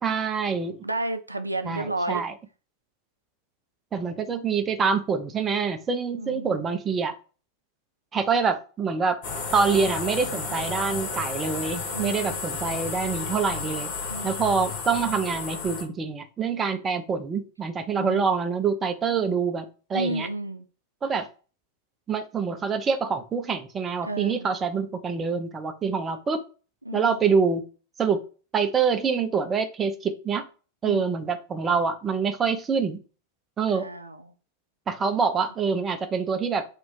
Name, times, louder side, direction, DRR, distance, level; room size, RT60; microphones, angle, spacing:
voice 1, 0.0-0.8 1.6-2.3 3.9-7.1 8.1-9.2 9.5-13.9 14.2-20.3 21.0-21.3 22.1-26.4 26.9-27.6 28.0-28.2 28.5-30.4 30.8-33.0 33.6-33.9 34.9-36.7, right 5 dB, 20° right, 0.5 m, -26 dB
voice 2, 0.8-2.2 6.2-6.7 11.9-12.4 14.1-14.4 18.0-18.3 19.9-20.7 24.0-24.5 26.9-27.3 30.8-31.2 33.7-34.2, right 1 dB, 85° right, 0.3 m, -32 dB
sound 1, 9.2-15.8, left 5 dB, 45° left, 1.0 m, -32 dB
3.0 x 2.5 x 3.8 m
figure-of-eight pair, 90°, 0 cm